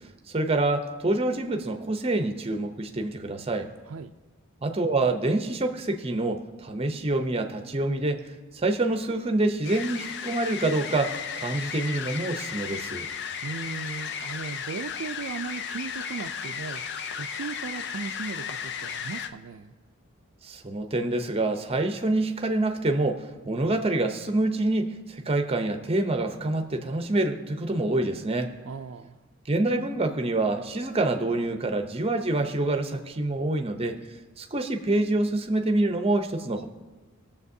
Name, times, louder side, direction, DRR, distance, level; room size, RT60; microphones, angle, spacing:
voice 1, 0.3-3.7 4.6-8.2 8.5-13.1 20.4-28.5 29.5-34.0 34.4-36.7, right 2 dB, 30° right, 6 dB, 0.6 m, -26 dB
sound 1, 9.6-19.3, left 7 dB, 55° left, 0.4 m, -35 dB
voice 2, 13.0-19.7 28.6-29.2, right 5 dB, 65° right, 8 dB, 0.4 m, -37 dB
20.5 x 7.2 x 2.7 m, 1.2 s
head